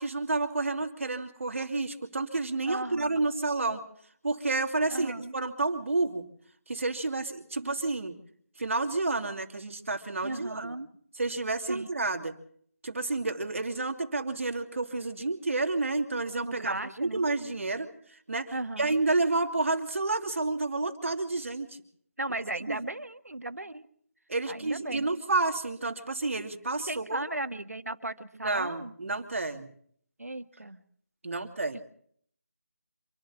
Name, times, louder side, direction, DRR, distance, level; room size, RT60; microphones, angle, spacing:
voice 1, 0.0-3.8 4.2-6.2 6.7-8.1 8.6-10.7 11.2-12.3 12.8-21.8 22.7-22.9 24.3-27.2 28.4-29.7 31.2-31.8, right 3 dB, 60° right, 6 dB, 2.9 m, -30 dB
voice 2, 2.7-3.2 4.9-5.3 7.6-7.8 10.2-10.9 11.7-11.9 16.4-17.3 18.5-18.9 22.2-23.8 24.5-25.1 26.9-28.9 30.2-30.8 31.7-31.8, right 2 dB, 80° right, 11 dB, 1.7 m, -36 dB
27.0 x 11.5 x 8.6 m, 0.62 s
figure-of-eight pair, 160°, 8 cm